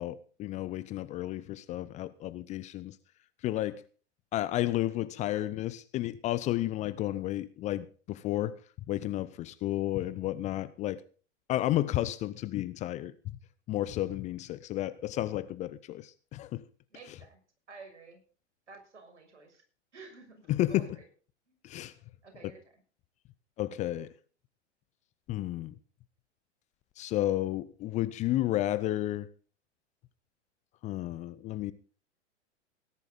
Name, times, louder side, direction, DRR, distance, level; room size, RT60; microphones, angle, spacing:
voice 1, 0.0-3.0 3.4-3.8 4.3-8.6 8.9-11.0 11.5-13.1 13.7-16.6 20.5-21.0 21.6-21.9 22.4-22.5 23.6-24.1 25.3-25.8 27.0-29.3 30.8-31.7, left 14 dB, 20° left, 0.5 m, -32 dB
voice 2, 16.9-17.4 17.7-18.2 18.7-19.6 19.9-21.0 21.5-21.6 22.2-22.8, right 4 dB, 70° right, 6.8 m, -51 dB
18.5 x 10.5 x 4.0 m
figure-of-eight pair, 100°, 36 cm